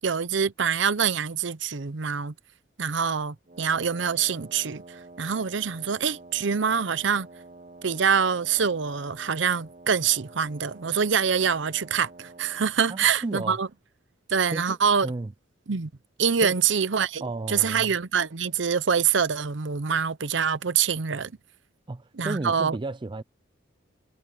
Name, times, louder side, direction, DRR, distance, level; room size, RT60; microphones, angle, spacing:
voice 1, 0.0-2.3 2.8-7.3 7.8-13.7 14.3-15.1 15.7-15.9 16.2-21.3 22.2-22.8, right 6 dB, 70° right, 0.7 m, -25 dB
Wind instrument woodwind instrument, 3.5-12.8, right 2 dB, 40° right, 1.3 m, -48 dB
voice 2, 12.9-13.6 14.5-14.8 15.0-15.3 16.4-16.6 17.2-17.9 21.9-23.2, right 2 dB, 25° right, 0.4 m, -33 dB
head